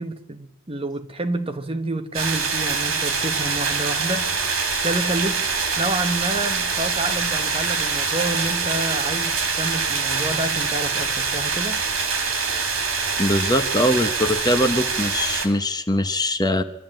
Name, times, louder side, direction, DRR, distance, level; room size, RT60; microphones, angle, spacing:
voice 1, 0.0-4.5 4.8-5.5 5.8-11.8, right 2 dB, 25° right, 1.2 m, -28 dB
sound 1, 2.1-15.5, right 5 dB, 80° right, 3.2 m, -24 dB
voice 2, 13.2-16.6, left 1 dB, 20° left, 1.0 m, -22 dB
24.0 x 12.5 x 9.0 m
head